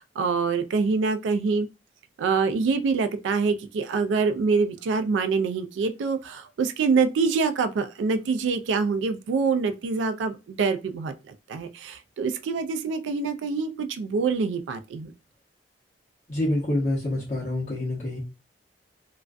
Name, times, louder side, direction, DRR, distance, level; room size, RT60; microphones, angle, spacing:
voice 1, 0.0-1.7 2.2-15.1, right 4 dB, 90° right, 0.3 m, -25 dB
voice 2, 16.3-18.2, left 1 dB, 45° left, 0.7 m, -27 dB
2.4 x 2.2 x 2.4 m
head